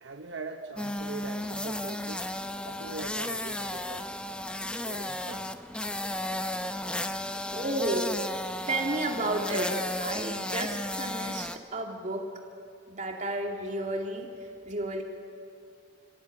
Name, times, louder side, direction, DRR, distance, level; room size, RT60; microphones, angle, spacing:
voice 1, 0.0-2.3 2.6-4.1 4.8-5.5, right 3 dB, 75° right, 0.9 m, -42 dB
sound 1, 0.8-11.6, left 1 dB, 5° left, 0.7 m, -34 dB
voice 2, 7.5-8.1 8.7-9.7 10.0-12.2 12.9-14.3 14.6-15.0, right 2 dB, 40° right, 2.9 m, -31 dB
27.5 x 15.0 x 8.7 m
head